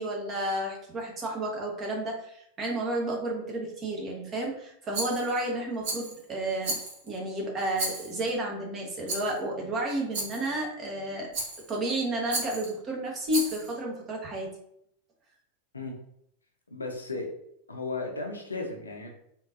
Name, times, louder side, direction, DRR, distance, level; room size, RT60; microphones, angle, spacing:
voice 1, 0.0-6.7 7.0-11.3 11.7-14.5, right 1 dB, 25° right, -1 dB, 1.0 m, -31 dB
Rattle, 4.9-5.4 5.8-6.2 6.6-7.2 7.7-8.3 9.1-9.4 10.1-10.5 11.3-11.8 12.3-12.7 13.3-13.7, right 2 dB, 50° right, 1.1 m, -34 dB
voice 2, 16.7-17.3 17.7-19.1, left 3 dB, 80° left, 1 dB, 0.6 m, -35 dB
3.5 x 2.7 x 2.5 m, 0.73 s
figure-of-eight pair, 90°, 0 cm